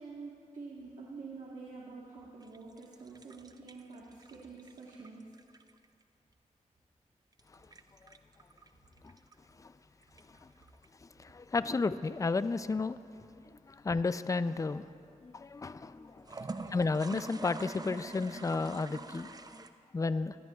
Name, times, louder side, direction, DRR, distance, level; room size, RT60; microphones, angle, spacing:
voice 1, 0.0-5.2, right 4 dB, 80° right, 1.4 m, -47 dB
sound 1, 2.4-6.0 7.3-9.3 10.0-10.9 16.2-19.7, right 3 dB, 30° right, 0.6 m, -45 dB
voice 2, 11.0-13.0 13.7-14.9 15.2-16.3 16.7-19.4 19.9-20.3, left 3 dB, 25° left, 0.4 m, -32 dB
19.5 x 13.5 x 2.4 m
cardioid pair, 55°, 13 cm